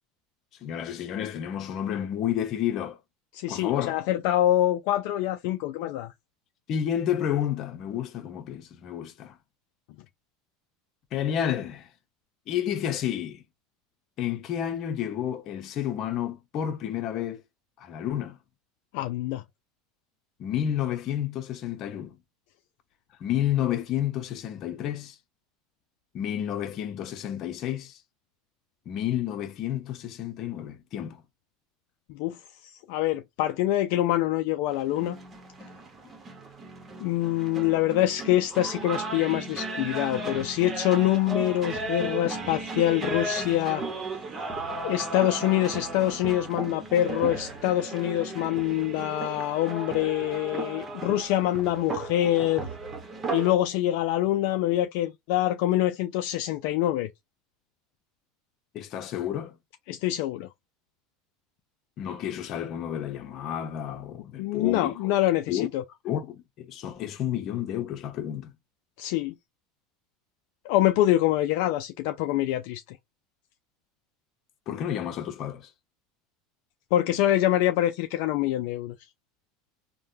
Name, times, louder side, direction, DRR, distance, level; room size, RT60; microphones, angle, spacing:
voice 1, 0.6-3.0 3.5-4.0 6.7-9.3 11.1-11.9 12.5-13.4 14.2-17.4 17.8-18.4 20.4-22.2 23.2-25.2 26.1-28.0 28.9-31.2 36.0-36.1 58.7-59.6 62.0-65.1 65.5-65.7 66.0-68.5 74.7-75.7, left 10 dB, 50° left, 0.8 m, -30 dB
voice 2, 3.3-6.1 18.9-19.4 32.1-32.4 32.6-35.2 37.0-43.8 44.8-52.7 53.3-57.1 59.9-60.5 64.4-65.8 69.0-69.3 70.6-73.0 76.9-78.9, left 14 dB, 70° left, 0.4 m, -25 dB
sound 1, 34.7-53.6, right 3 dB, 30° right, 1.0 m, -35 dB
3.3 x 2.2 x 2.7 m
supercardioid pair, 115°, 0 cm